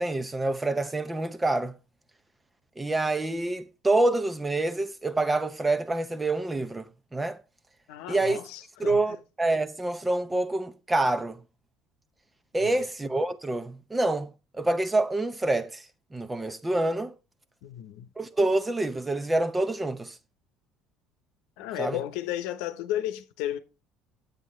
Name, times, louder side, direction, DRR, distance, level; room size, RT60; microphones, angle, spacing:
voice 1, 0.0-1.8 2.8-7.4 8.1-8.4 8.8-11.4 12.5-15.8 16.1-17.1 18.2-20.1 21.8-22.0, right 2 dB, 10° right, 0.7 m, -27 dB
voice 2, 7.9-9.2 12.6-12.9 17.6-18.1 21.6-23.6, left 12 dB, 90° left, 1.0 m, -34 dB
9.5 x 8.3 x 3.2 m
cardioid pair, 150°, 0 cm